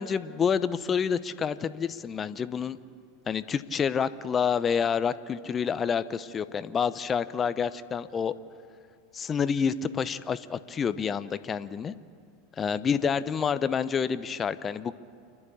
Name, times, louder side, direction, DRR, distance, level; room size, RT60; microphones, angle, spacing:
voice 1, 0.0-2.8 3.3-8.3 9.1-11.9 12.6-14.9, left 7 dB, 30° left, 14 dB, 0.8 m, -28 dB
29.0 x 11.0 x 8.4 m, 2.2 s
hypercardioid pair, 90°, 0 cm